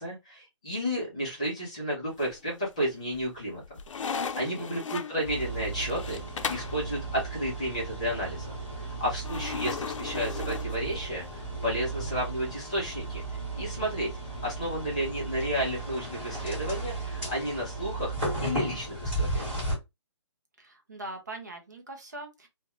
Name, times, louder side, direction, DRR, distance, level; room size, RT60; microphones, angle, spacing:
voice 1, 0.0-3.6 4.3-6.2 6.5-13.2 13.6-14.1 14.4-18.1 18.4-19.5, equal, 15° left, 0.5 m, -32 dB
sound 1, 2.1-2.7 3.1-6.8 9.2-11.3, left 6 dB, 85° left, 0.4 m, -37 dB
voice 2, 4.3-4.9 20.6-22.5, right 2 dB, 35° right, 0.5 m, -42 dB
sound 2, 5.2-19.8, right 2 dB, 5° right, 1.3 m, -35 dB
2.4 x 2.2 x 2.8 m
hypercardioid pair, 180°, 16 cm